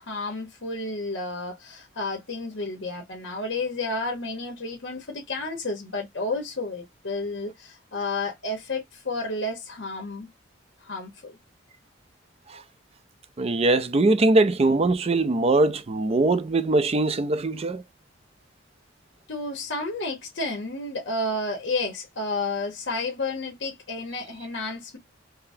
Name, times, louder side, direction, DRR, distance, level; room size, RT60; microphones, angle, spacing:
voice 1, 0.0-10.3 10.8-11.3 19.3-25.0, left 2 dB, 70° left, 1.1 m, -31 dB
voice 2, 13.4-17.8, right 2 dB, 35° right, 0.4 m, -21 dB
3.9 x 2.0 x 2.6 m
head